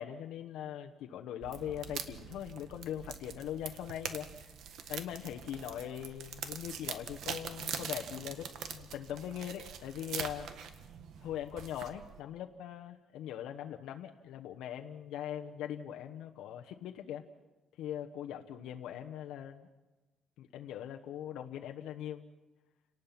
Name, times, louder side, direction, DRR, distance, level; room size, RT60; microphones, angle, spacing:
voice 1, 0.0-4.6 4.9-10.5 11.2-17.3 17.8-19.7 20.4-22.2, left 10 dB, 90° left, 3 dB, 1.1 m, -41 dB
sound 1, 1.4-12.2, right 8 dB, 70° right, 1.6 m, -43 dB
30.0 x 19.0 x 5.9 m, 1.1 s
cardioid pair, 135°, 0 cm